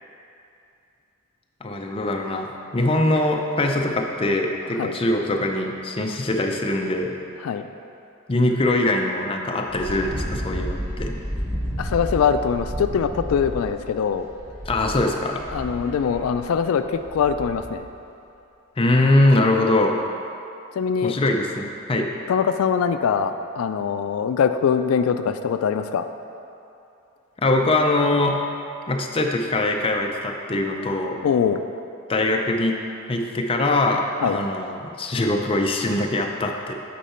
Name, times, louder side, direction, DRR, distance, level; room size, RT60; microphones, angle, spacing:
voice 1, 1.6-7.2 8.3-11.1 14.7-15.4 18.8-20.0 21.0-22.1 27.4-28.4 28.9-31.2 32.1-32.8 33.1-36.7, left 2 dB, 25° left, 2 dB, 0.5 m, -22 dB
Wind, 9.7-17.8, equal, 10° right, 1.3 m, -32 dB
voice 2, 11.8-14.3 15.5-17.8 20.8-21.1 22.3-26.1 31.2-31.6 34.2-34.4, left 7 dB, 90° left, 9 dB, 0.3 m, -22 dB
8.3 x 4.7 x 4.3 m, 2.7 s
head